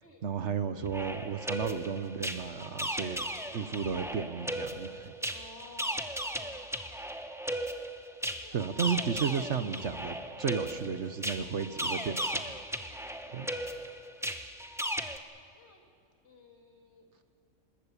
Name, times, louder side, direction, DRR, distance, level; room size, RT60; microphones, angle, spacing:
voice 1, 0.2-3.2 3.5-5.1 8.5-12.4 13.3-13.5, right 6 dB, 60° right, 10 dB, 1.2 m, -33 dB
sound 1, 0.8-15.2, equal, ahead, 0.8 m, -37 dB
voice 2, 5.3-6.8 8.4-8.6 12.8-13.5 15.5-15.8 16.2-17.1, left 2 dB, 55° left, 2 dB, 2.9 m, -55 dB
26.0 x 21.0 x 8.4 m, 2.3 s
omnidirectional pair, 1.4 m